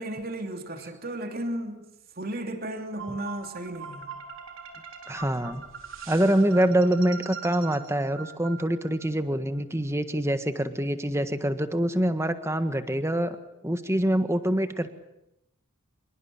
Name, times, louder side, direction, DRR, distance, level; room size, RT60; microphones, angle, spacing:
voice 1, 0.0-4.1, right 1 dB, 45° right, 5 dB, 3.0 m, -34 dB
sound 1, 3.0-9.1, right 6 dB, 65° right, 4.1 m, -42 dB
voice 2, 5.1-5.6 6.1-13.4 13.6-14.9, right 1 dB, 15° right, 10 dB, 1.5 m, -25 dB
26.0 x 22.5 x 8.8 m, 0.87 s
head